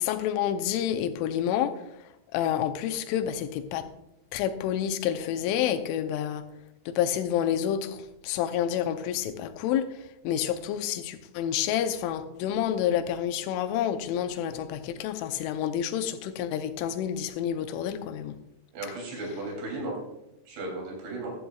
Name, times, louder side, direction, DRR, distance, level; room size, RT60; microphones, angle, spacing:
voice 1, 0.0-1.8 2.3-3.9 4.3-6.5 6.9-18.4, left 10 dB, 90° left, 9 dB, 3.2 m, -29 dB
voice 2, 18.7-20.0 20.5-21.3, right 2 dB, 75° right, 0 dB, 5.3 m, -35 dB
15.0 x 12.0 x 2.4 m, 0.86 s
omnidirectional pair, 5.4 m